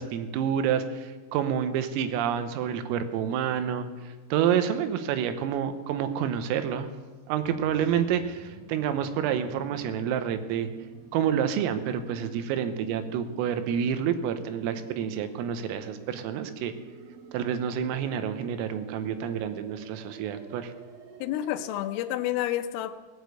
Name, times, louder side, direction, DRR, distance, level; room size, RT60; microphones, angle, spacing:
voice 1, 0.0-3.9 4.3-6.9 7.3-10.7 11.1-16.7 17.3-20.7, right 8 dB, 85° right, 10 dB, 3.6 m, -28 dB
sound 1, 7.4-22.3, right 4 dB, 65° right, 2.2 m, -49 dB
voice 2, 21.2-23.0, left 13 dB, 85° left, 10 dB, 3.4 m, -29 dB
17.5 x 8.9 x 8.0 m, 1.4 s
omnidirectional pair, 5.9 m